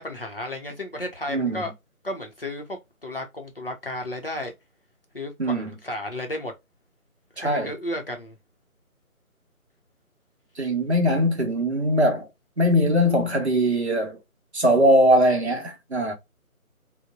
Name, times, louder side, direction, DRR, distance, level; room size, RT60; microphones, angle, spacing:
voice 1, 0.0-1.7 2.0-4.5 5.1-6.5 7.4-8.4, left 1 dB, 40° left, 0.6 m, -33 dB
voice 2, 1.3-1.6 5.4-5.7 7.4-7.7 10.6-12.3 12.6-14.2 14.5-16.1, equal, 50° right, 0.8 m, -21 dB
3.0 x 2.1 x 2.2 m
figure-of-eight pair, 170°, 43 cm